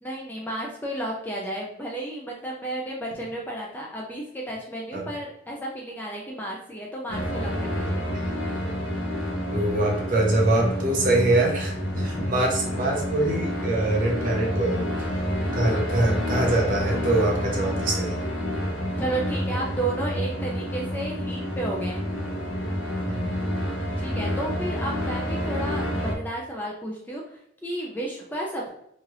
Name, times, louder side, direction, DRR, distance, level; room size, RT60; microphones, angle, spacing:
voice 1, 0.0-8.0 12.1-12.3 19.0-22.1 24.0-28.7, right 1 dB, 10° left, -2 dB, 0.4 m, -32 dB
sound 1, 7.1-26.1, equal, 80° left, 0.8 m, -29 dB
voice 2, 9.5-15.2 15.5-18.2 23.0-23.4, right 2 dB, 40° right, -1 dB, 0.7 m, -24 dB
3.1 x 2.4 x 2.9 m, 0.75 s
head